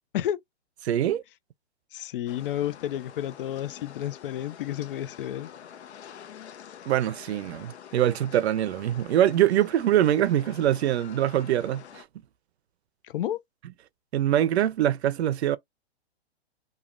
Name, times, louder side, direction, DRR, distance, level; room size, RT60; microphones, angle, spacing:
voice 1, 0.9-1.2 6.9-12.0 14.1-15.6, right 11 dB, 75° right, 0.5 m, -24 dB
voice 2, 1.9-5.5 13.0-13.4, left 11 dB, 55° left, 0.4 m, -31 dB
sound 1, 2.3-12.0, left 9 dB, 80° left, 0.8 m, -47 dB
3.1 x 2.4 x 2.5 m
hypercardioid pair, 150°, 33 cm